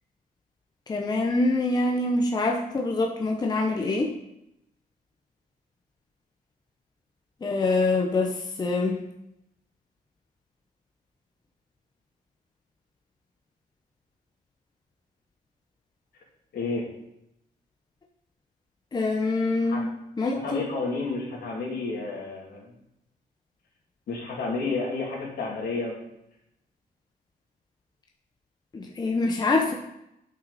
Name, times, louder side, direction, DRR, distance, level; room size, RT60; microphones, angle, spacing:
voice 1, 0.9-4.1 7.4-9.0 18.9-19.9 20.2-20.6 28.7-29.7, left 2 dB, 25° left, 1 dB, 0.8 m, -25 dB
voice 2, 16.5-16.8 19.7-19.8 20.4-22.7 24.1-26.0, left 3 dB, 75° left, -3 dB, 2.6 m, -31 dB
8.6 x 5.9 x 4.1 m, 0.82 s
cardioid pair, 135°, 17 cm